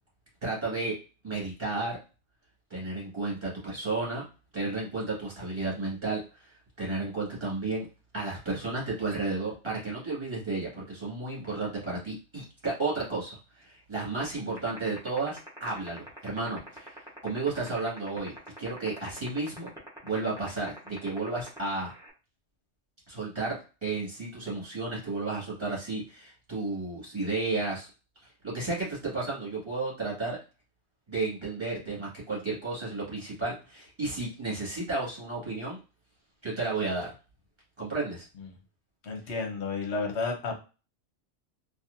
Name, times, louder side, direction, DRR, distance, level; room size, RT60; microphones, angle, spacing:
voice 1, 0.4-0.9 1.2-2.0 2.7-4.2 4.5-7.9 8.1-18.3 18.6-19.7 20.0-21.9 23.1-27.9 28.2-30.4 31.1-35.8 36.4-37.1 37.8-38.3, right 3 dB, 25° right, -6 dB, 1.9 m, -33 dB
sound 1, 14.7-22.1, right 1 dB, 5° right, 0.9 m, -45 dB
voice 2, 39.0-40.6, left 4 dB, 70° left, 2 dB, 1.1 m, -31 dB
4.2 x 2.5 x 2.6 m, 0.32 s
omnidirectional pair, 1.2 m